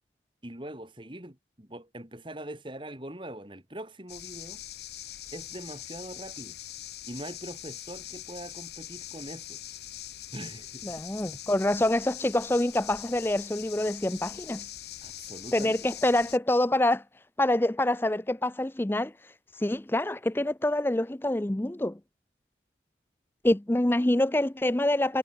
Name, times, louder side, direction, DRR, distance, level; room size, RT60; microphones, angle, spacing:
voice 1, 0.4-4.6 5.3-6.6 7.0-9.6 10.3-11.0 15.0-15.8, right 1 dB, 30° right, 2.8 m, -42 dB
sound 1, 4.1-16.4, left 12 dB, 70° left, 3.0 m, -42 dB
voice 2, 10.8-14.7 15.5-17.0 17.4-19.1 19.6-22.0 23.4-25.2, left 1 dB, 10° left, 0.5 m, -26 dB
head